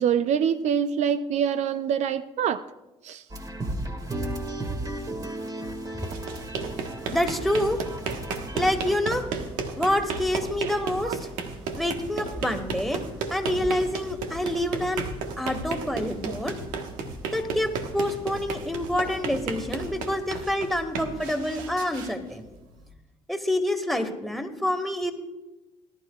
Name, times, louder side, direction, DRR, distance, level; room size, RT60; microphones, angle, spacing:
voice 1, 0.0-2.7 3.0-3.2 11.0-11.2 15.8-15.9 16.2-16.3, right 8 dB, 65° right, 13 dB, 0.5 m, -25 dB
sound 1, 3.3-8.9, right 1 dB, 30° right, 2.1 m, -34 dB
sound 2, 5.9-22.9, right 4 dB, 85° right, 1.3 m, -34 dB
voice 2, 7.0-7.8 8.5-9.3 9.8-11.3 11.8-13.0 13.3-15.1 15.4-16.6 17.3-22.4 23.3-25.1, left 1 dB, ahead, 5 dB, 1.8 m, -27 dB
19.0 x 12.0 x 2.4 m, 1.0 s
supercardioid pair, 70°, 13 cm